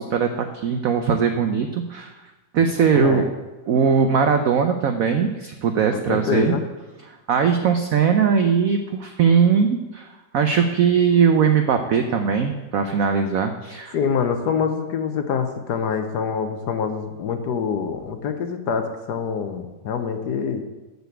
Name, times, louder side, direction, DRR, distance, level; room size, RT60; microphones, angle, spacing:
voice 1, 0.0-2.1 2.5-3.2 3.7-6.5 7.3-10.1 10.3-14.0, right 6 dB, 75° right, 7 dB, 0.7 m, -20 dB
voice 2, 2.9-3.3 5.9-6.6 13.9-20.6, left 6 dB, 65° left, 7 dB, 1.2 m, -25 dB
6.8 x 6.7 x 7.9 m, 1.1 s
omnidirectional pair, 2.1 m